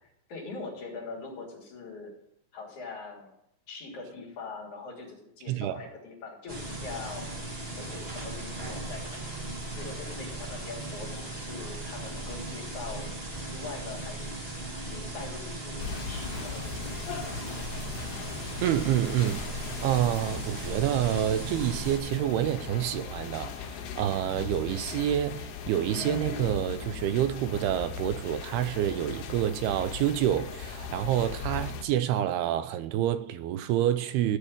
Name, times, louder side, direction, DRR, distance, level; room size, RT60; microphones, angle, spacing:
voice 1, 0.0-2.1 2.5-3.3 3.7-7.3 7.7-9.3 9.7-14.3 14.8-17.7, left 4 dB, 50° left, 4.1 m, -42 dB
voice 2, 5.5-5.8 18.6-34.4, right 11 dB, 80° right, 2.4 m, -28 dB
sound 1, 6.5-22.0, right 2 dB, 45° right, 0.7 m, -37 dB
sound 2, 15.8-31.8, left 6 dB, 70° left, 3.3 m, -38 dB
14.5 x 5.4 x 8.9 m
omnidirectional pair, 4.8 m